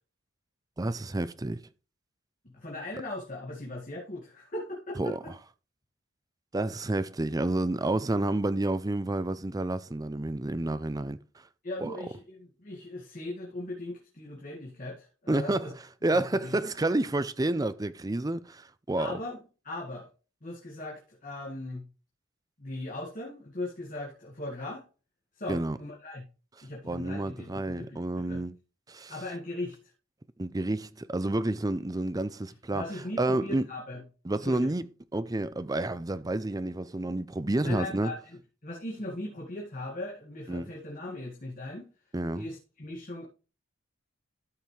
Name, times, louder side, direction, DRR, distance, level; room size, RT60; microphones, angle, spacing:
voice 1, 0.8-1.6 5.0-5.2 6.5-11.2 11.8-12.0 15.3-19.2 25.5-25.8 26.8-28.5 28.9-29.2 30.4-32.8 33.2-33.7 34.2-34.8 35.1-38.1 40.5-40.7 42.1-42.5, right 2 dB, 20° right, 0.5 m, -29 dB
voice 2, 2.4-5.3 11.6-15.7 16.1-16.6 19.0-19.4 19.6-20.1 20.4-21.8 22.6-24.8 25.4-26.2 26.6-28.4 29.0-29.8 32.7-34.0 34.4-34.7 37.6-41.8 42.3-43.3, left 2 dB, 40° left, 2.2 m, -39 dB
13.0 x 5.8 x 3.3 m
head